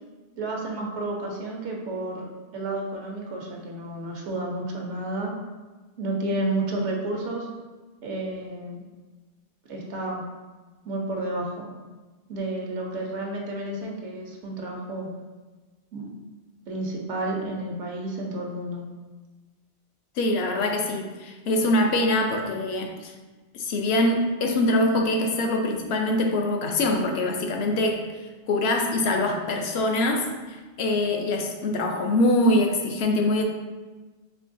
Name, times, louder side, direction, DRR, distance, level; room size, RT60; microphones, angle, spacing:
voice 1, 0.4-5.3 6.0-7.5 8.0-8.8 9.7-10.2 10.8-11.7 12.3-15.1 15.9-16.1 16.7-18.8, right 2 dB, 85° right, -1 dB, 1.0 m, -31 dB
voice 2, 20.2-23.1 23.5-28.0 28.5-33.4, left 1 dB, 70° left, 3 dB, 0.8 m, -24 dB
4.5 x 2.8 x 2.5 m, 1.3 s
omnidirectional pair, 1.2 m